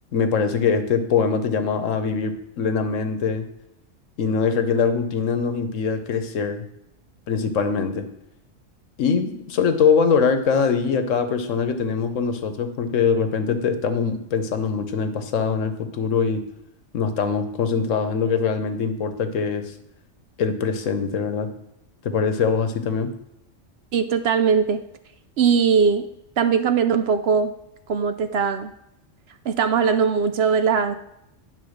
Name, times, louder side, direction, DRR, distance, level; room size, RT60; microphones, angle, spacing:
voice 1, 0.1-3.5 4.2-6.7 7.3-8.1 9.0-16.4 16.9-19.7 20.4-21.5 22.0-23.1, left 5 dB, 80° left, 9 dB, 1.2 m, -23 dB
voice 2, 23.9-24.8 25.4-26.1 26.4-27.5 27.9-28.7 29.4-31.0, right 6 dB, 65° right, 9 dB, 0.7 m, -20 dB
10.0 x 3.8 x 6.4 m, 0.81 s
omnidirectional pair, 1.3 m